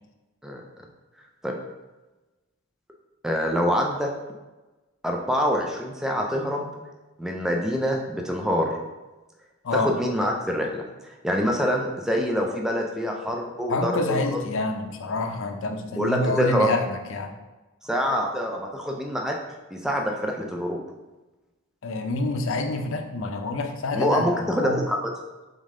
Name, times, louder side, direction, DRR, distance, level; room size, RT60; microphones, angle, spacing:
voice 1, 3.2-4.1 5.0-6.7 7.2-8.7 9.7-14.4 15.9-16.7 17.8-19.4 19.7-20.8 23.9-25.0, equal, 5° right, 1 dB, 0.4 m, -25 dB
voice 2, 13.7-17.3 21.8-24.8, left 2 dB, 65° left, 5 dB, 0.5 m, -27 dB
3.6 x 3.6 x 3.7 m, 1.1 s
head